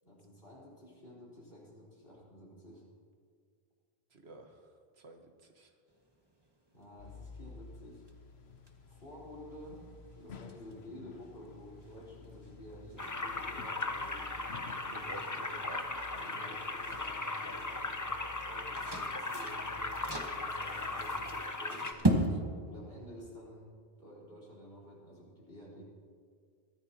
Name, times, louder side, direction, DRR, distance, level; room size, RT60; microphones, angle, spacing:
voice 1, 0.0-2.8 6.7-8.0 8.9-9.9 10.1-15.4 16.1-20.0 20.3-22.2 22.6-23.7 24.0-25.8, left 1 dB, 65° left, -5 dB, 4.6 m, -51 dB
voice 2, 4.1-4.7 5.0-5.7 14.8-16.0, right 2 dB, 90° right, 4 dB, 1.7 m, -50 dB
sound 1, 5.9-22.3, right 1 dB, 25° right, 1.4 m, -41 dB
sound 2, 7.0-21.4, left 4 dB, 85° left, 1.0 m, -53 dB
sound 3, 13.0-21.9, left 2 dB, 20° left, 0.7 m, -38 dB
22.5 x 15.5 x 3.0 m, 2.1 s
omnidirectional pair, 1.0 m